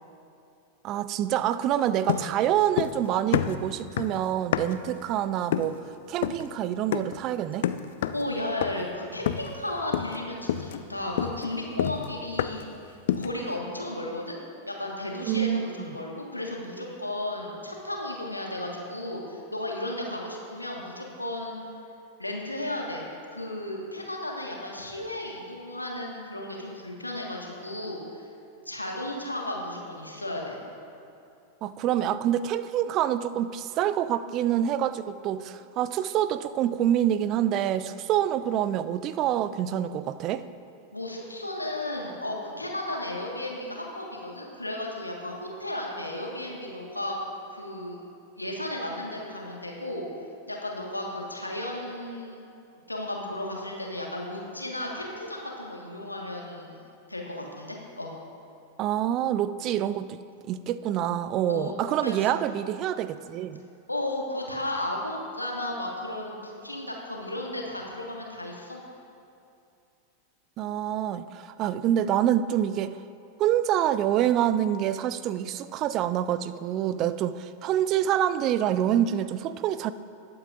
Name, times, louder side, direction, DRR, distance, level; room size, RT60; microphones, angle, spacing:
voice 1, 0.8-5.8 6.1-7.7 15.3-15.7 31.6-40.4 58.8-60.2 60.5-63.6 70.6-73.0 73.4-79.9, right 11 dB, 35° right, 14 dB, 0.4 m, -26 dB
sound 1, 2.1-3.1 3.3-4.9 5.5-5.8 6.2-6.5 6.9-7.2 7.6-8.3 8.6-8.9 9.3-9.6 9.9-10.2 10.5-12.7 13.1-13.4, left 10 dB, 55° left, 0.4 m, -29 dB
voice 2, 8.1-14.4 14.7-21.5 22.2-23.0 23.3-28.0 28.6-30.6 40.9-47.2 47.5-48.0 48.4-50.1 50.5-52.4 52.9-56.7 57.1-58.1 61.5-62.4 63.9-68.8, left 1 dB, 85° left, -1 dB, 1.5 m, -34 dB
19.5 x 8.6 x 2.5 m, 2.6 s
figure-of-eight pair, 90°, 0 cm